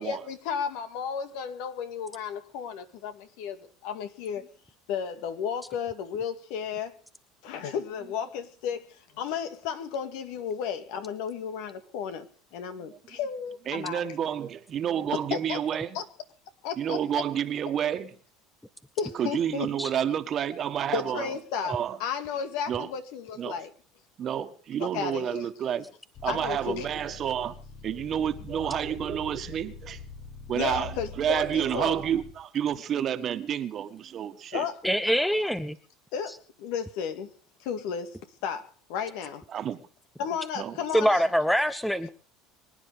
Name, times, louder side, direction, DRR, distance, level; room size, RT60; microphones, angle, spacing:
voice 1, 0.0-4.4 4.9-7.0 7.4-12.3 12.5-14.0 15.3-15.6 15.9-16.0 16.6-17.2 19.0-19.7 20.9-23.7 24.8-25.5 26.3-26.9 30.5-32.0 34.5-34.8 36.1-37.3 37.6-38.2 38.4-39.4 40.2-41.3, left 7 dB, 75° left, 2.1 m, -33 dB
voice 2, 12.9-13.2 13.7-16.0 16.8-18.1 19.1-21.3 21.7-22.0 22.7-22.9 23.4-23.6 24.2-25.9 26.2-27.6 27.8-30.0 30.5-34.7 39.5-39.8 40.6-40.8, right 9 dB, 40° right, 1.7 m, -29 dB
sound 1, 26.1-32.3, left 4 dB, 40° left, 2.4 m, -44 dB
voice 3, 34.8-35.8 40.9-42.1, equal, 5° left, 0.7 m, -24 dB
24.0 x 9.9 x 5.0 m
supercardioid pair, 120°, 0 cm